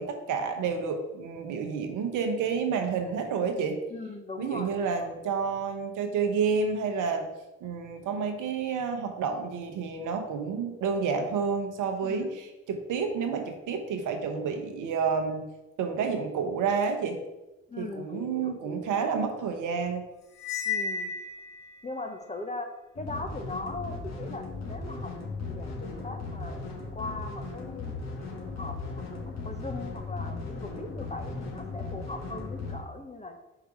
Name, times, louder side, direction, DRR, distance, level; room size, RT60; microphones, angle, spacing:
voice 1, 0.0-3.8 4.4-7.3 7.6-15.4 15.8-17.2 17.8-20.0, right 5 dB, 60° right, 5 dB, 1.0 m, -29 dB
voice 2, 3.9-5.1 12.0-12.3 17.7-19.0 20.6-21.1 21.8-22.7 23.0-25.1 25.4-26.6 26.9-28.0 28.6-29.0 29.4-33.4, left 2 dB, 20° left, 5 dB, 1.0 m, -39 dB
Cymbal, 20.4-21.8, left 5 dB, 70° left, 1.2 m, -33 dB
sound 1, 23.0-32.8, left 3 dB, 50° left, 1.8 m, -37 dB
4.9 x 4.6 x 4.9 m, 1.0 s
hypercardioid pair, 45°, 34 cm